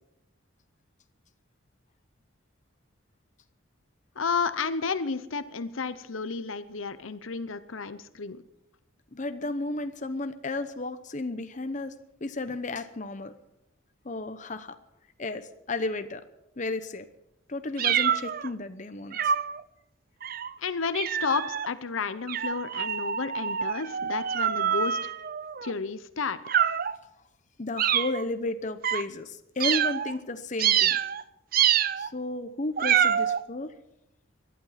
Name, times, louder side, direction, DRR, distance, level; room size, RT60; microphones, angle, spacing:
voice 1, 4.2-8.4 20.6-25.1 25.6-26.4, left 5 dB, 80° left, 13 dB, 0.8 m, -31 dB
voice 2, 9.1-11.9 12.2-13.3 14.0-14.8 15.2-16.2 16.6-17.1 17.5-19.3 27.6-31.0 32.0-33.7, left 2 dB, 40° left, 9 dB, 0.9 m, -33 dB
sound 1, 17.8-18.5 19.1-19.6 20.2-20.5 20.9-21.7 22.3-25.7 26.4-27.0 27.8-28.2 28.8-29.0 29.6-30.1 30.6-31.2 31.5-32.1 32.8-33.4, right 9 dB, 45° right, 0.5 m, -26 dB
18.0 x 12.0 x 5.8 m, 0.83 s
head